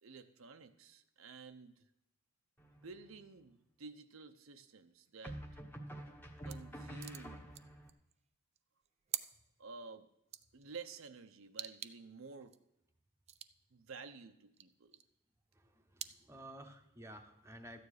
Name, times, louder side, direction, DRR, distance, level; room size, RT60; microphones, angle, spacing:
voice 1, 0.0-1.8 2.8-5.4 6.4-7.5 9.6-10.1 10.5-12.5 13.7-15.0, right 4 dB, 70° right, 7 dB, 0.7 m, -52 dB
sound 1, 2.6-3.2 5.2-7.9, right 1 dB, 10° left, 1.2 m, -48 dB
sound 2, 6.4-6.6 6.9-8.2 8.5-9.3 10.3-10.7 11.6-11.9 12.2-12.6 13.3-13.5 14.5-15.0 16.0-16.1, right 11 dB, 30° right, 0.4 m, -45 dB
voice 2, 15.5-17.8, right 1 dB, 15° right, 4 dB, 0.9 m, -53 dB
13.0 x 9.3 x 4.9 m, 0.81 s
head